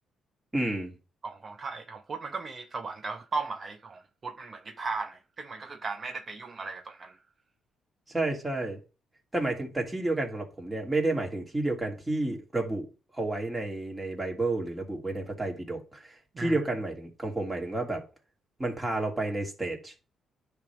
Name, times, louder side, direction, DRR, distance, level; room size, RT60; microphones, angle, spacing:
voice 1, 0.5-0.9 8.1-8.8 9.3-12.9 13.1-18.0 18.6-19.9, right 2 dB, 15° right, 2.7 m, -31 dB
voice 2, 1.2-7.2 16.3-16.6, right 4 dB, 40° right, 0.7 m, -37 dB
10.0 x 3.5 x 6.0 m
cardioid pair, 90°, 0 cm